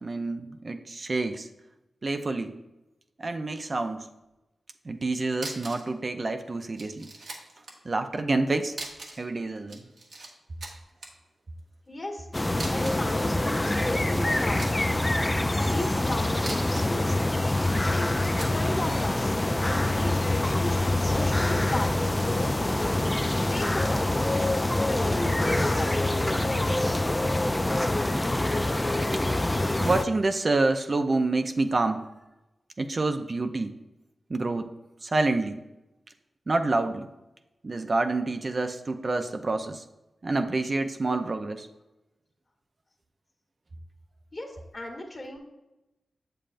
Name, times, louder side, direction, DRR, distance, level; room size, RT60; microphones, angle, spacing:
voice 1, 0.0-1.5 2.0-2.6 3.2-4.1 4.9-7.1 7.8-8.7 9.2-9.8 29.8-32.0 32.8-33.7 34.3-34.7 35.0-35.6 36.5-37.1 37.6-39.8 40.2-41.7, right 2 dB, 50° right, 7 dB, 0.5 m, -27 dB
sound 1, 5.0-5.1 5.3-5.9 6.2-6.3 6.8-7.8 8.7-9.3 9.6-10.3 10.6-11.1 12.5-13.1 13.8-15.1 16.3-17.0 17.8-18.6, right 2 dB, 80° right, 1.1 m, -40 dB
voice 2, 11.9-12.3 12.7-14.9 15.2-17.4 17.9-18.1 18.5-19.4 19.6-22.7 23.0-24.3 24.8-27.1 44.3-45.4, left 1 dB, 45° left, 1 dB, 1.5 m, -36 dB
sound 2, 12.3-30.1, left 1 dB, 20° left, 0.4 m, -25 dB
7.3 x 6.8 x 2.5 m, 0.98 s
cardioid pair, 45°, 0 cm